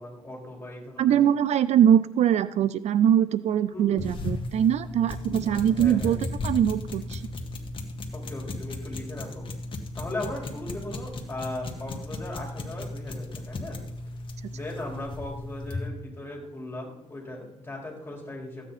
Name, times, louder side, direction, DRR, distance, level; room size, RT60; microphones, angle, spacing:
voice 1, 0.0-1.2 3.7-4.2 5.2-5.4 5.7-6.2 8.1-9.4 9.9-13.8 14.5-18.7, left 1 dB, 15° left, -2 dB, 4.6 m, -38 dB
voice 2, 1.0-7.2, right 9 dB, 65° right, 16 dB, 0.5 m, -22 dB
sound 1, 4.0-15.9, left 2 dB, 45° left, 2.0 m, -36 dB
15.0 x 9.0 x 4.2 m, 0.88 s
cardioid pair, 90°, 12 cm